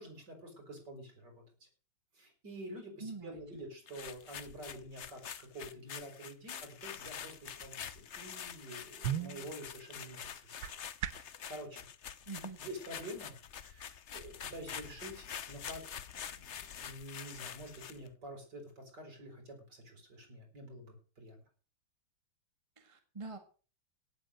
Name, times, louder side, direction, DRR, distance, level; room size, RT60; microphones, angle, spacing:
voice 1, 0.0-1.4 2.1-10.7 11.1-11.9 12.6-15.8 16.3-21.4, right 1 dB, 60° right, 4 dB, 6.1 m, -48 dB
voice 2, 3.0-3.7 12.3-12.6 22.8-23.4, right 3 dB, 15° right, 6 dB, 1.7 m, -45 dB
sound 1, 3.9-18.1, left 8 dB, 55° left, 0.8 m, -46 dB
sound 2, 9.0-11.4, right 10 dB, 90° right, 1.8 m, -40 dB
17.5 x 7.7 x 6.5 m, 0.38 s
omnidirectional pair, 2.1 m